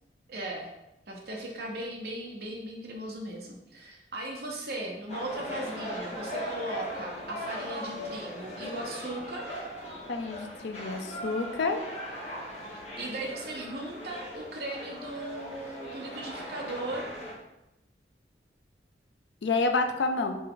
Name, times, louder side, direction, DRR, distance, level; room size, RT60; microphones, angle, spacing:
voice 1, 0.3-0.7 1.1-9.5 12.7-17.0, right 1 dB, 60° right, -1 dB, 0.8 m, -38 dB
sound 1, 5.1-17.3, equal, 40° left, 1.2 m, -39 dB
voice 2, 10.1-11.8 19.4-20.4, left 3 dB, 80° left, 6 dB, 0.5 m, -28 dB
4.0 x 3.2 x 3.8 m, 0.93 s
head